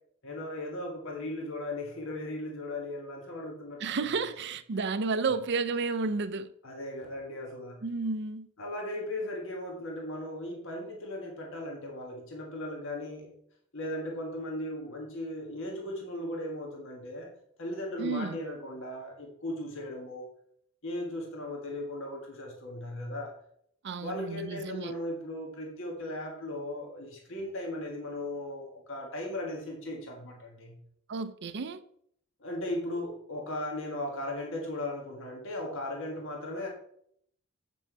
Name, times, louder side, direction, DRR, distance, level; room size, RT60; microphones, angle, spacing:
voice 1, 0.2-3.8 6.6-7.8 8.6-13.3 13.7-17.3 17.6-20.3 20.8-23.3 24.0-30.8 32.4-36.7, left 1 dB, 60° left, 1.6 m, -37 dB
voice 2, 3.8-6.5 7.8-8.5 18.0-18.4 23.8-24.9 31.1-31.8, right 4 dB, 50° right, 0.5 m, -32 dB
7.9 x 6.0 x 4.6 m
head